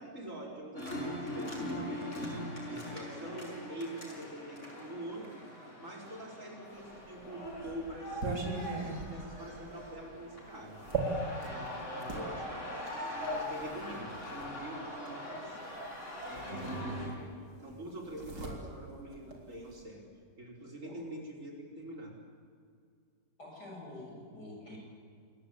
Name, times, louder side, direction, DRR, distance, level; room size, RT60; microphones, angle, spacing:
voice 1, 0.0-5.4 5.8-10.8 11.5-15.6 16.2-20.0 20.4-22.2, right 1 dB, 45° right, 1 dB, 5.4 m, -45 dB
sound 1, 0.8-17.1, left 1 dB, 40° left, 6.2 m, -41 dB
sound 2, 6.9-12.3 13.2-14.5 15.8-15.9 16.2-17.3 17.6-19.8, right 3 dB, 70° right, 4.3 m, -40 dB
voice 2, 23.4-24.8, left 2 dB, 65° left, -1 dB, 8.6 m, -47 dB
27.5 x 21.5 x 8.6 m, 2.3 s
omnidirectional pair, 1.9 m